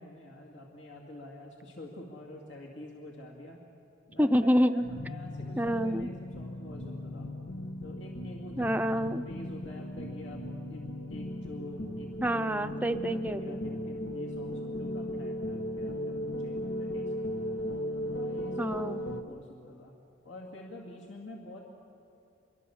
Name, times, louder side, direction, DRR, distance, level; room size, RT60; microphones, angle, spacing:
voice 1, 0.0-3.6 4.1-7.3 7.8-8.8 9.3-12.1 12.8-17.6 18.0-18.7 19.2-20.0 20.2-21.6, left 1 dB, 70° left, -1 dB, 2.4 m, -47 dB
voice 2, 4.2-4.8 5.6-6.1 8.6-9.2 12.2-13.6 18.6-19.0, equal, 10° right, 9 dB, 0.6 m, -27 dB
sound 1, 4.8-19.2, left 1 dB, 85° left, 1.4 m, -37 dB
26.0 x 23.5 x 7.2 m, 2.6 s
head